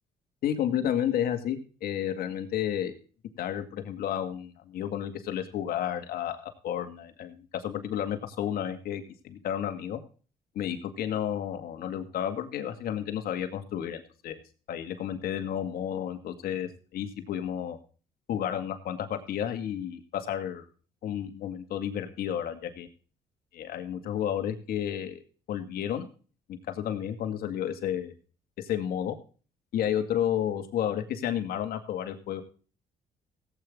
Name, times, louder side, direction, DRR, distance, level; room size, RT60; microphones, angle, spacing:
voice 1, 0.4-3.0 3.4-10.0 10.6-14.4 14.7-17.8 18.3-20.6 21.0-22.9 23.5-25.2 25.5-26.1 26.7-28.1 28.6-29.2 29.7-32.4, left 10 dB, 75° left, 7 dB, 2.1 m, -31 dB
17.0 x 8.8 x 3.7 m, 0.38 s
supercardioid pair, 70°, 16 cm